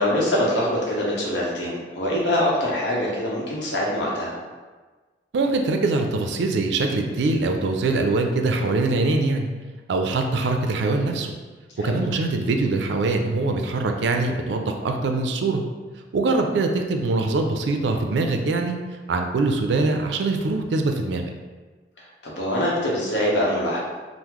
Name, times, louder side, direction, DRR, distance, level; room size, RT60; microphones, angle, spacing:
voice 1, 0.0-4.4 11.8-12.0 16.3-16.4 22.2-23.8, left 1 dB, 80° left, -4 dB, 0.8 m, -24 dB
voice 2, 5.3-9.5 9.9-11.3 11.8-15.6 16.1-18.8 19.1-21.3, right 3 dB, 75° right, 4 dB, 0.4 m, -23 dB
3.6 x 2.0 x 3.0 m, 1.3 s
head